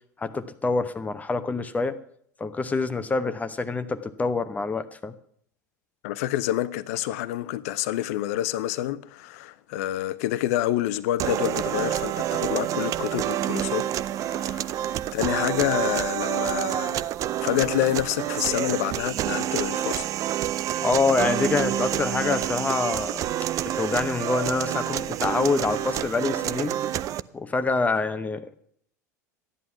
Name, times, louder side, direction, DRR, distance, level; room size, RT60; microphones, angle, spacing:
voice 1, 0.2-2.0 2.4-5.1 20.8-23.2 23.7-26.7 27.3-28.6, left 3 dB, 15° left, 0.8 m, -26 dB
voice 2, 6.0-13.9 14.2-14.7 15.1-17.0 17.4-20.1, left 14 dB, 55° left, 0.7 m, -28 dB
sound 1, 11.2-27.2, right 12 dB, 35° right, 0.5 m, -28 dB
14.0 x 11.0 x 5.7 m
figure-of-eight pair, 75°, 10 cm